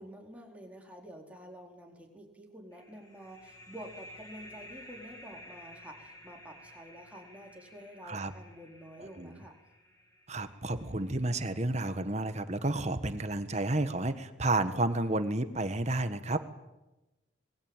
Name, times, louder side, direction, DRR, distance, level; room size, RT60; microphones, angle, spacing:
voice 1, 0.0-9.5, equal, 5° right, 0 dB, 4.4 m, -49 dB
sound 1, 2.7-12.0, left 1 dB, 20° left, 6.0 m, -53 dB
voice 2, 9.0-9.4 10.3-16.5, right 2 dB, 35° right, 10 dB, 1.4 m, -31 dB
26.0 x 21.0 x 9.0 m, 1.0 s
head